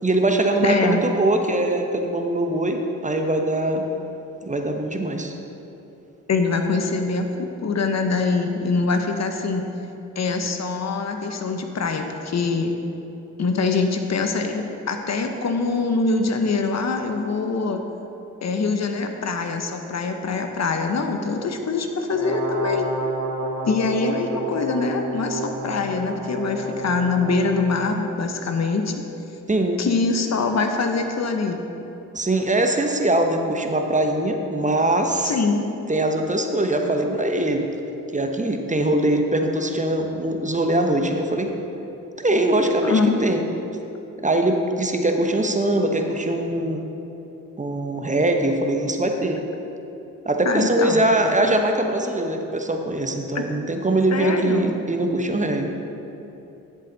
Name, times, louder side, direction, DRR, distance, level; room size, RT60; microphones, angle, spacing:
voice 1, 0.0-3.8 4.4-5.3 29.5-29.8 32.1-35.3 35.9-37.7 38.1-41.5 42.2-43.4 44.2-46.9 47.6-49.4 50.2-55.7, right 1 dB, 20° right, 4 dB, 1.0 m, -22 dB
voice 2, 0.6-1.0 6.3-9.7 10.2-12.7 13.4-17.8 18.4-22.9 23.7-28.9 29.8-31.6 35.2-35.6 42.8-43.1 50.4-51.1 53.3-53.4 54.1-54.7, left 4 dB, 50° left, 5 dB, 0.9 m, -24 dB
Brass instrument, 22.1-27.9, right 2 dB, 75° right, 1.5 m, -30 dB
11.0 x 7.5 x 4.0 m, 3.0 s
supercardioid pair, 50°, 35 cm